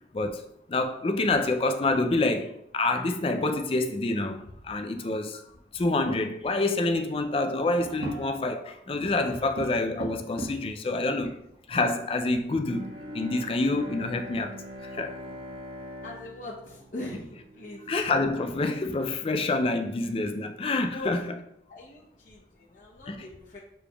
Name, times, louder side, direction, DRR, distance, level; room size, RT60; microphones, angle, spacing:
voice 1, 0.1-5.4 5.7-11.4 11.7-14.5 14.9-15.1 17.9-21.4 23.1-23.3, left 2 dB, 30° left, 0.4 m, -27 dB
sound 1, 7.8-8.6 9.0-10.8 11.5-11.6 11.8-11.9 12.6-13.5 15.3-15.4 15.9-16.4 16.8-16.9 17.4-18.3, right 1 dB, 70° right, 1.0 m, -40 dB
Bowed string instrument, 12.6-17.9, left 1 dB, 30° right, 0.7 m, -42 dB
voice 2, 16.0-17.3 17.5-17.9 20.9-21.2 21.7-23.6, left 2 dB, 50° left, 0.8 m, -41 dB
6.9 x 3.3 x 2.3 m
head